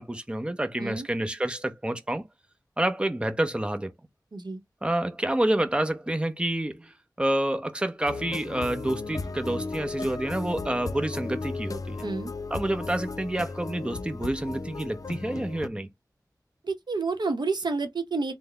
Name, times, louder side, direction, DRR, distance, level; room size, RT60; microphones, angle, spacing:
voice 1, 0.0-2.2 2.8-3.9 4.8-12.0 12.5-15.9, right 1 dB, 15° right, 0.6 m, -28 dB
sound 1, 8.1-15.7, left 3 dB, 55° left, 0.4 m, -35 dB
voice 2, 12.0-12.3 16.6-18.3, right 3 dB, 85° right, 0.7 m, -29 dB
3.8 x 2.0 x 3.3 m
wide cardioid pair, 60°, 7 cm